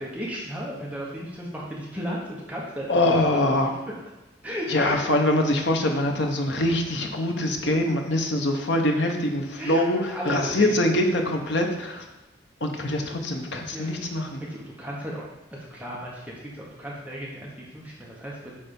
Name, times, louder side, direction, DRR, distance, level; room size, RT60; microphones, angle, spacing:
voice 1, 0.0-2.9 4.4-5.0 8.8-8.9 9.6-10.8 13.2-13.4 13.7-14.1 14.5-18.6, equal, 10° right, -4 dB, 1.0 m, -35 dB
voice 2, 2.9-3.7 4.7-12.0 12.6-14.4, left 1 dB, 65° left, 3 dB, 0.9 m, -24 dB
8.7 x 3.4 x 5.3 m, 1.0 s
head